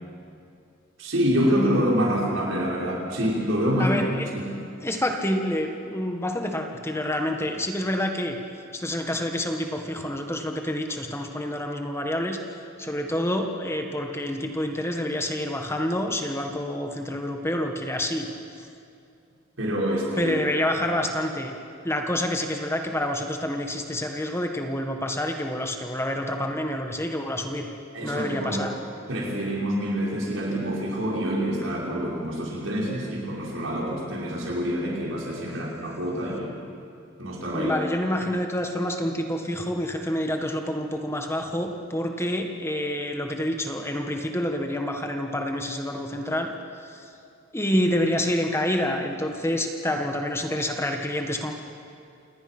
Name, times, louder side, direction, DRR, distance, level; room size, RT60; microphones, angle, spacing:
voice 1, 1.0-4.0 4.3-4.5 19.6-20.3 27.9-28.6 29.1-36.5 37.2-37.8, equal, 85° right, -3 dB, 5.6 m, -26 dB
voice 2, 3.8-4.3 4.8-8.4 8.7-12.4 12.8-18.3 20.2-21.5 21.8-27.7 28.0-28.7 37.5-46.5 46.9-47.0 47.5-51.5, left 1 dB, 15° left, 4 dB, 1.5 m, -28 dB
28.0 x 19.5 x 6.1 m, 2.5 s
head